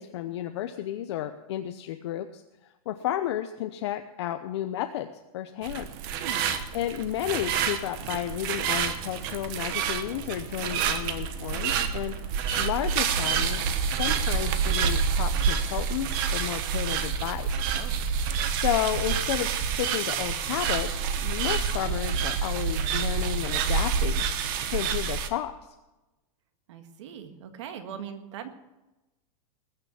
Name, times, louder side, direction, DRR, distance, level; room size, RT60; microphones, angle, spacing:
voice 1, 0.0-2.4 2.9-5.1 5.3-5.9 6.7-12.2 12.6-17.7 18.5-24.3 24.7-25.7, left 12 dB, 50° left, 7 dB, 0.7 m, -32 dB
sound 1, 5.6-25.3, right 6 dB, 35° right, 1.1 m, -28 dB
voice 2, 26.7-28.5, right 8 dB, 55° right, 8 dB, 1.8 m, -40 dB
20.0 x 6.8 x 7.3 m, 1.0 s
supercardioid pair, 170°, 18 cm